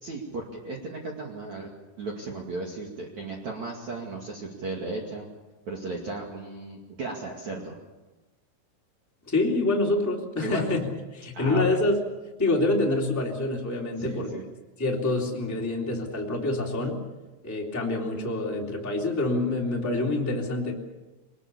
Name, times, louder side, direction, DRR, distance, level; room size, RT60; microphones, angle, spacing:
voice 1, 0.0-1.7 2.0-5.3 5.7-7.8 10.4-10.7 11.3-11.8 14.0-14.4, right 3 dB, 45° right, -1 dB, 3.1 m, -35 dB
voice 2, 9.2-10.8 11.1-12.0 12.4-14.3 14.8-17.0 17.4-20.7, left 2 dB, 5° left, -1 dB, 2.3 m, -26 dB
25.0 x 20.0 x 7.1 m, 1.1 s
omnidirectional pair, 5.6 m